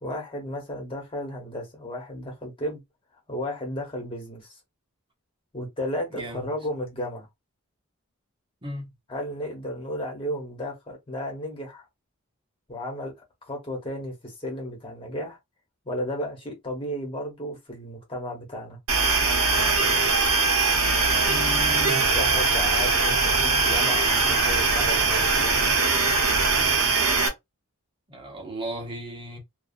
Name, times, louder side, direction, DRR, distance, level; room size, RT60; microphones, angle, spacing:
voice 1, 0.0-2.8 3.3-4.6 5.5-7.3 9.1-11.8 12.7-13.1 13.4-15.4 15.8-18.8 21.8-25.6, equal, 25° left, 1.2 m, -33 dB
voice 2, 6.1-6.5 8.6-8.9 21.2-22.0 28.1-29.4, equal, 20° right, 0.9 m, -35 dB
sound 1, 18.9-27.3, right 4 dB, 65° right, 0.7 m, -21 dB
2.7 x 2.3 x 2.4 m
head